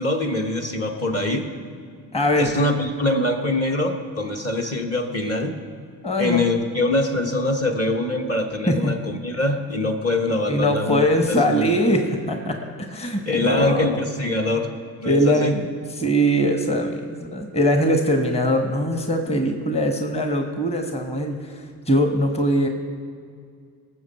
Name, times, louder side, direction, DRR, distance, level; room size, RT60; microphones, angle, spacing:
voice 1, 0.0-1.5 2.4-5.6 6.2-11.1 11.5-11.7 13.2-14.7 15.0-15.6, left 2 dB, 30° left, 3 dB, 1.4 m, -23 dB
voice 2, 2.1-2.7 6.0-6.4 8.7-8.9 10.5-14.0 15.0-22.7, equal, 15° left, 5 dB, 1.3 m, -22 dB
19.0 x 7.4 x 4.3 m, 2.2 s
hypercardioid pair, 50°, 47 cm